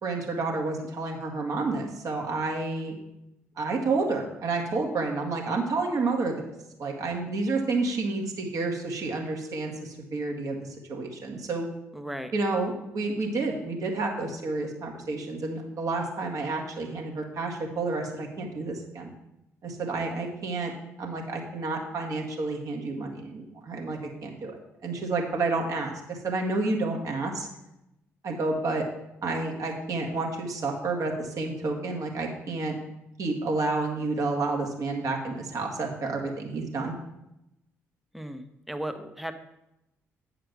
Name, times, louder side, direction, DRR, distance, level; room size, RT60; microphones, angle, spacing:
voice 1, 0.0-3.0 3.6-6.4 6.8-10.6 10.9-11.7 12.3-19.1 19.6-20.7 21.0-27.5 28.2-28.8 29.2-32.7 33.2-36.9, right 3 dB, 50° right, 1 dB, 1.9 m, -30 dB
voice 2, 11.9-12.3 38.1-39.3, right 1 dB, ahead, 8 dB, 0.9 m, -36 dB
8.9 x 4.9 x 6.0 m, 0.87 s
figure-of-eight pair, 45°, 7 cm